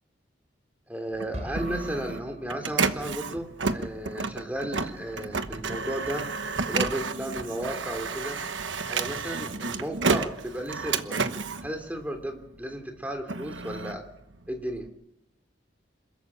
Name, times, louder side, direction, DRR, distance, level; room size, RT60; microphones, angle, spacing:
voice 1, 0.9-6.3 6.7-8.4 8.9-11.2 11.6-14.0 14.5-14.9, right 1 dB, 10° right, 4 dB, 3.1 m, -34 dB
Printer, 1.1-12.6 13.0-14.9, right 4 dB, 90° right, 1.2 m, -31 dB
sound 1, 1.3-3.4, equal, 40° right, 4.6 m, -41 dB
26.5 x 14.0 x 8.8 m, 0.80 s
head